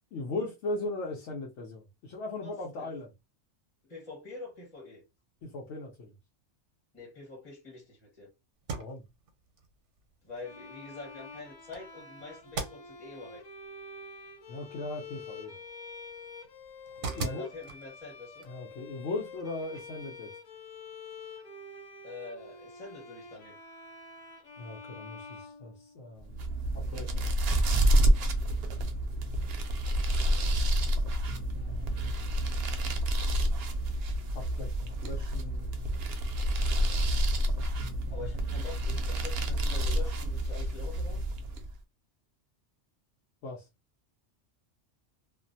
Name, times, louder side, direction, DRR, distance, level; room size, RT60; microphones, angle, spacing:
voice 1, 0.1-3.1 5.4-6.1 8.8-9.0 14.5-15.6 17.2-17.5 18.5-20.3 24.6-27.4 31.7-32.2 34.3-35.7 38.2-38.3 43.4-43.7, left 2 dB, 85° left, 1.0 m, -38 dB
voice 2, 2.4-2.9 3.8-5.0 6.9-8.3 10.2-13.4 17.0-18.4 22.0-23.5 36.8-37.2 38.1-41.2, left 3 dB, 30° left, 1.1 m, -45 dB
sound 1, 8.5-20.2, right 4 dB, 80° right, 1.0 m, -44 dB
Bowed string instrument, 10.4-26.3, left 3 dB, 50° left, 0.5 m, -47 dB
sound 2, 26.2-41.7, right 1 dB, 65° right, 0.7 m, -28 dB
2.5 x 2.1 x 2.6 m
omnidirectional pair, 1.2 m